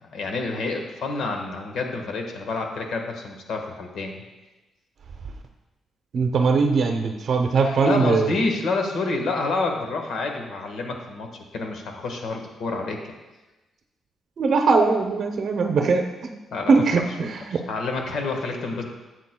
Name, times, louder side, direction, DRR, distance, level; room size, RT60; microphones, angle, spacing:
voice 1, 0.0-4.2 7.6-11.3 11.5-13.0 16.5-16.8 17.5-18.8, left 3 dB, 65° left, 3 dB, 1.4 m, -28 dB
voice 2, 6.1-8.3 14.4-16.0 16.7-17.6, right 4 dB, 55° right, 4 dB, 0.7 m, -20 dB
12.5 x 8.1 x 2.3 m, 1.1 s
cardioid pair, 135°, 0 cm